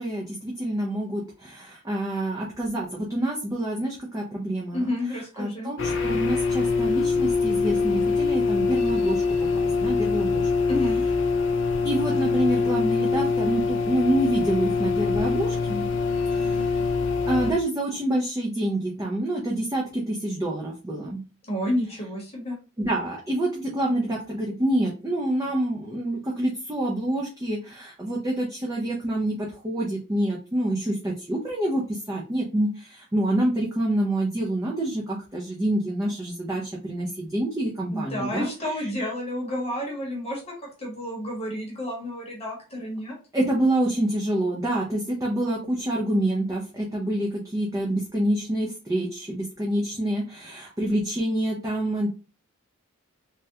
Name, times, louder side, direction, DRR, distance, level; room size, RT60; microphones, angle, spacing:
voice 1, 0.0-4.8 5.4-9.2 9.6-10.5 11.8-15.8 16.3-16.8 17.3-21.2 22.8-38.5 43.3-52.1, right 1 dB, 15° right, -3 dB, 0.4 m, -27 dB
voice 2, 4.7-5.7 10.7-11.0 21.5-22.6 37.9-40.5 40.8-43.1, left 1 dB, 30° left, -1 dB, 0.9 m, -30 dB
sound 1, 5.8-17.5, left 4 dB, 60° left, 0.4 m, -24 dB
3.4 x 2.2 x 2.7 m, 0.33 s
head